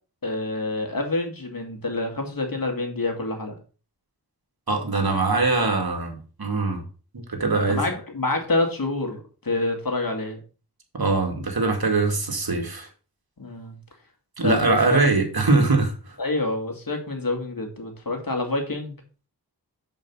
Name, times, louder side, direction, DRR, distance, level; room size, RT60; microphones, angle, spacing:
voice 1, 0.2-3.5 7.5-10.4 13.4-13.8 14.4-15.0 16.2-18.9, left 2 dB, 55° left, 3 dB, 2.3 m, -27 dB
voice 2, 4.7-6.8 7.1-7.8 10.9-12.9 14.4-16.2, right 3 dB, 65° right, 3 dB, 2.3 m, -22 dB
6.7 x 5.1 x 5.5 m, 0.35 s
cardioid pair, 45°, 40 cm